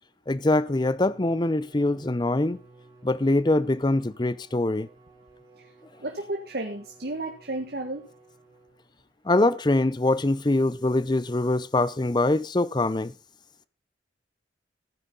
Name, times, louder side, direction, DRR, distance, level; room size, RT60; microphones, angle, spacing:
voice 1, 0.3-2.6 3.0-4.9 9.3-13.1, left 2 dB, 25° left, 0.6 m, -23 dB
Bowed string instrument, 0.7-9.0, right 3 dB, 25° right, 4.4 m, -54 dB
voice 2, 6.0-8.1, right 2 dB, 55° right, 1.6 m, -33 dB
15.0 x 10.0 x 3.9 m
head